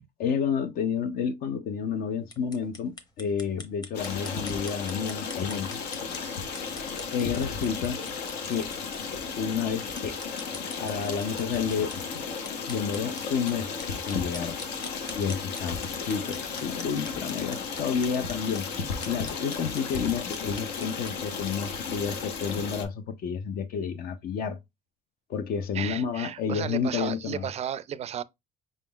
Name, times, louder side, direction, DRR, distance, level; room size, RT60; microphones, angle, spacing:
voice 1, 0.2-5.8 6.7-8.0 8.5-8.7 9.4-10.2 10.8-12.0 12.7-13.8 14.1-14.6 15.2-18.7 19.1-24.6 25.3-27.4, left 6 dB, 60° left, 0.6 m, -30 dB
sound 1, 2.2-21.2, left 2 dB, 25° left, 0.9 m, -46 dB
Stream, 3.9-22.8, left 5 dB, 85° left, 0.9 m, -34 dB
voice 2, 25.7-28.2, right 9 dB, 40° right, 0.3 m, -34 dB
5.1 x 3.7 x 2.2 m
cardioid pair, 110°, 17 cm